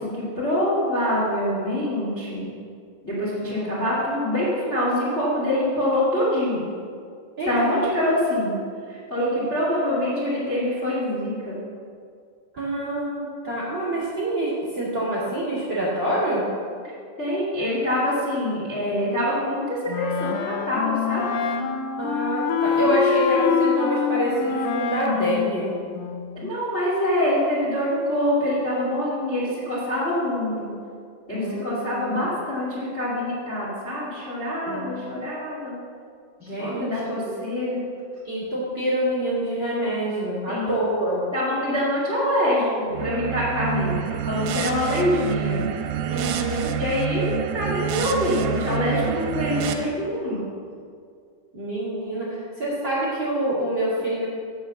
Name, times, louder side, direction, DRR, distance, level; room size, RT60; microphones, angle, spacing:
voice 1, 0.0-2.5 3.0-6.7 7.4-8.5 8.9-11.6 17.2-21.2 22.8-23.1 26.3-30.7 31.3-35.7 36.6-37.8 40.5-40.7 41.3-45.6 46.7-50.4, left 1 dB, 65° left, -7 dB, 0.6 m, -25 dB
voice 2, 12.5-16.4 22.0-25.7 31.3-32.2 34.7-34.9 36.4-37.3 38.2-41.2 46.1-46.7 51.5-54.3, right 1 dB, 40° right, -8 dB, 1.6 m, -26 dB
Wind instrument woodwind instrument, 19.9-26.5, left 7 dB, 90° left, 2.3 m, -25 dB
sound 1, 42.9-49.7, right 8 dB, 80° right, 3.0 m, -27 dB
8.2 x 7.2 x 7.0 m, 2.2 s
omnidirectional pair, 5.6 m